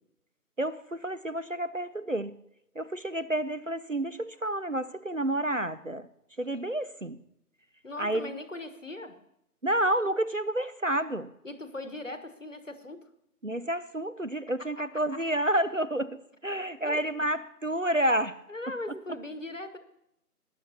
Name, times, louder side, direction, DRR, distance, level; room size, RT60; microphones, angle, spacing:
voice 1, 0.6-2.4 2.8-6.1 6.4-7.2 8.0-8.3 9.6-11.3 13.4-16.2 16.4-18.4, right 1 dB, 55° right, 14 dB, 0.5 m, -29 dB
voice 2, 7.8-9.2 11.4-13.0 14.6-15.2 16.8-17.3 18.5-19.8, left 2 dB, 50° left, 10 dB, 1.2 m, -40 dB
21.0 x 11.0 x 2.9 m, 0.79 s
figure-of-eight pair, 180°, 47 cm